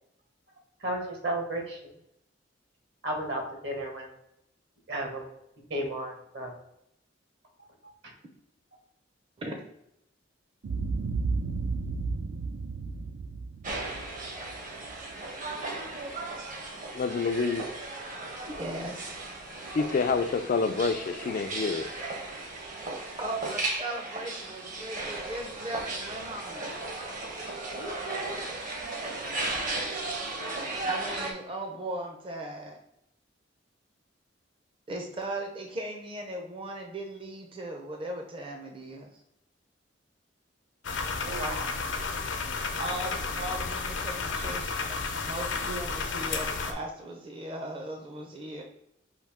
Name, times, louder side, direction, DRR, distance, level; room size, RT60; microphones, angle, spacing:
voice 1, 0.8-1.8 3.0-4.1 4.9-5.2 5.7-6.5 27.7-28.4 41.2-41.7 42.3-42.4, right 1 dB, 65° right, 1 dB, 1.4 m, -34 dB
Boom, 10.6-14.9, right 4 dB, 85° right, 0.5 m, -33 dB
sound 1, 13.6-31.3, right 2 dB, 45° right, 0.9 m, -36 dB
voice 2, 16.9-17.7 19.7-21.9, left 4 dB, 45° left, 9 dB, 0.3 m, -27 dB
voice 3, 18.4-19.2 23.2-26.8 30.8-32.8 34.9-39.1 42.8-44.9 45.2-48.6, right 1 dB, 30° right, 2 dB, 0.6 m, -38 dB
sound 2, 40.8-46.7, left 4 dB, 80° left, 0.7 m, -32 dB
5.5 x 2.7 x 3.5 m, 0.78 s
head